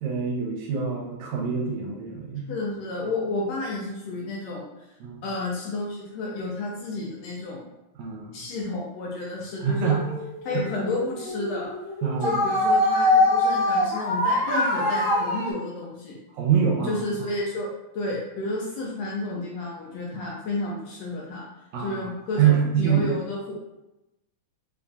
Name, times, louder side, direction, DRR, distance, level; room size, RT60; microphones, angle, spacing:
voice 1, 0.0-2.5 5.0-5.2 8.0-8.4 9.6-10.0 10.5-10.7 12.0-12.4 16.3-17.0 20.1-20.2 21.7-22.1 22.4-23.0, right 7 dB, 80° right, -1 dB, 1.9 m, -25 dB
voice 2, 2.5-4.7 5.2-7.7 8.3-9.9 10.4-11.7 12.2-16.2 16.9-17.7 17.9-21.5 21.8-23.5, left 2 dB, 75° left, -3 dB, 1.6 m, -31 dB
sound 1, 9.8-15.5, left 1 dB, 60° right, 1.1 m, -24 dB
4.7 x 2.3 x 2.6 m, 0.94 s
omnidirectional pair, 3.4 m